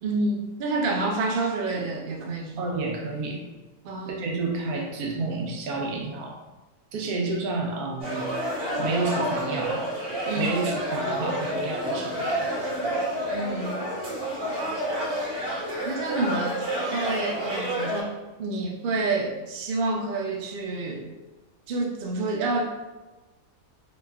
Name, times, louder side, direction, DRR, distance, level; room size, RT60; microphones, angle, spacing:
voice 1, 0.0-2.6 3.8-4.3 10.2-10.5 13.3-13.8 15.8-21.1 21.7-22.6, right 2 dB, 65° right, 0 dB, 0.5 m, -28 dB
voice 2, 2.6-3.4 4.1-6.4 6.9-8.4 8.8-9.9 10.4-12.7, right 3 dB, 85° right, 1 dB, 1.1 m, -30 dB
sound 1, 8.0-18.0, right 1 dB, 45° right, 1.1 m, -29 dB
3.9 x 3.0 x 2.3 m, 1.2 s
omnidirectional pair, 1.6 m